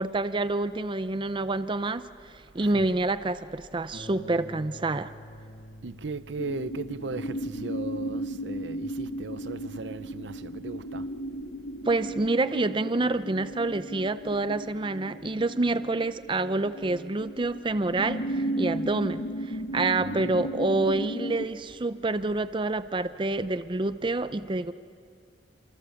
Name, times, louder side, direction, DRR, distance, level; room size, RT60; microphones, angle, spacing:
voice 1, 0.0-2.1 2.5-5.1 11.8-24.7, right 2 dB, 25° right, 0.6 m, -27 dB
Harp, 3.9-13.1 13.9-14.0 14.5-14.6, equal, 65° left, 5.3 m, -50 dB
voice 2, 5.8-11.1 20.0-20.4, right 3 dB, 80° right, 0.7 m, -37 dB
sound 1, 6.4-21.5, right 1 dB, 85° left, 1.3 m, -35 dB
29.0 x 26.5 x 7.1 m
head